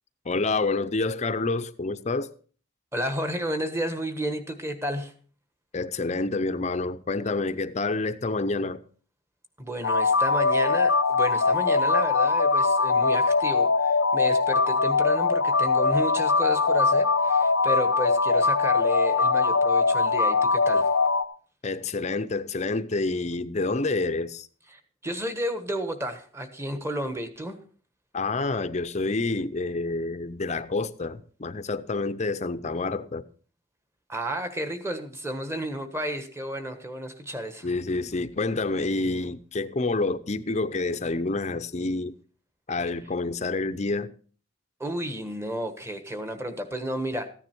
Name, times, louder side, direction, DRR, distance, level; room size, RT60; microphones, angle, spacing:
voice 1, 0.3-2.3 5.7-8.8 21.6-24.5 28.1-33.2 37.6-42.1 42.7-44.1, left 3 dB, 35° left, 0.6 m, -28 dB
voice 2, 2.9-5.1 9.6-20.9 24.7-27.6 34.1-37.7 44.8-47.3, equal, 15° right, 1.3 m, -32 dB
sound 1, 9.8-21.2, left 4 dB, 85° left, 0.8 m, -22 dB
14.5 x 9.7 x 4.5 m
head